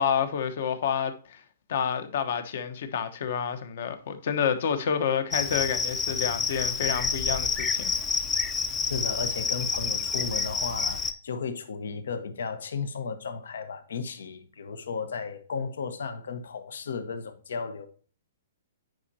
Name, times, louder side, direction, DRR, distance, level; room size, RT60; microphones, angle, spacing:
voice 1, 0.0-1.4 1.7-7.9, left 7 dB, 55° left, 1.1 m, -28 dB
Cricket, 5.3-11.1, left 5 dB, 10° left, 0.5 m, -28 dB
voice 2, 8.9-17.9, left 5 dB, 80° left, 1.2 m, -34 dB
9.3 x 5.1 x 2.8 m
hypercardioid pair, 170°, 0 cm